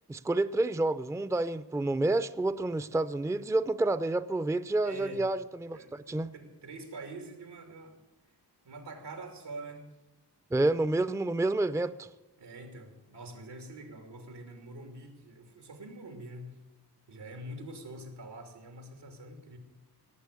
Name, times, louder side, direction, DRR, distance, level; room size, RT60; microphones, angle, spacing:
voice 1, 0.1-6.3 10.5-12.1, right 2 dB, 10° right, 14 dB, 0.5 m, -29 dB
voice 2, 4.8-5.2 5.7-8.0 8.3-8.4 8.6-9.8 12.4-16.6 17.1-19.6, right 2 dB, 90° right, 5 dB, 2.9 m, -45 dB
18.5 x 7.7 x 8.4 m, 1.0 s
wide cardioid pair, 85°, 40 cm